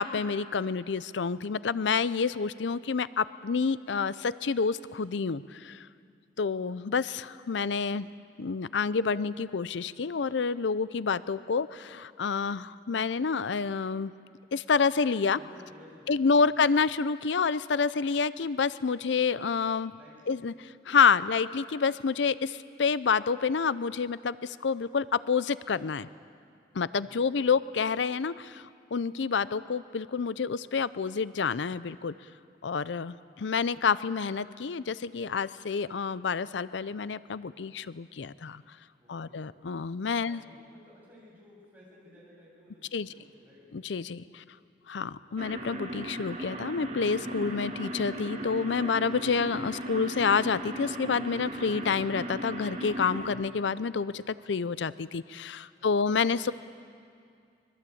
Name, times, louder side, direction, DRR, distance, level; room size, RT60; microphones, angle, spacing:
voice 1, 0.0-5.9 6.4-8.1 8.4-14.1 14.5-15.4 16.1-19.9 20.3-20.5 20.9-26.1 26.7-32.1 32.6-38.6 39.1-40.4 42.9-43.1 43.7-44.4 44.9-56.5, left 5 dB, 90° left, 17 dB, 0.5 m, -28 dB
voice 2, 15.3-16.5 19.9-20.4 27.0-27.5 39.0-39.4 40.2-43.6 44.2-44.6 55.8-56.5, left 1 dB, 10° right, -5 dB, 7.9 m, -56 dB
sound 1, 45.4-53.3, right 1 dB, 40° right, 2.7 m, -37 dB
24.5 x 22.0 x 8.6 m, 2.3 s
head